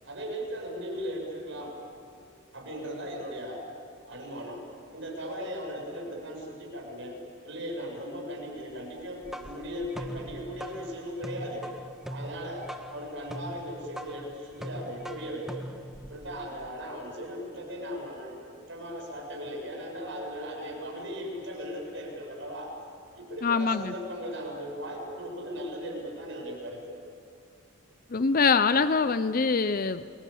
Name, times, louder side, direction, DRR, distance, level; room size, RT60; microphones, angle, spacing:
voice 1, 0.0-1.7 2.5-3.7 4.1-4.6 4.9-7.2 7.4-11.6 12.1-15.7 16.0-22.7 23.1-26.8, equal, 60° right, 0 dB, 7.5 m, -37 dB
sound 1, 9.0-16.7, right 1 dB, ahead, 1.3 m, -42 dB
voice 2, 23.4-23.9 28.1-30.1, left 5 dB, 45° left, 12 dB, 0.6 m, -24 dB
29.0 x 23.5 x 8.6 m, 2.5 s
head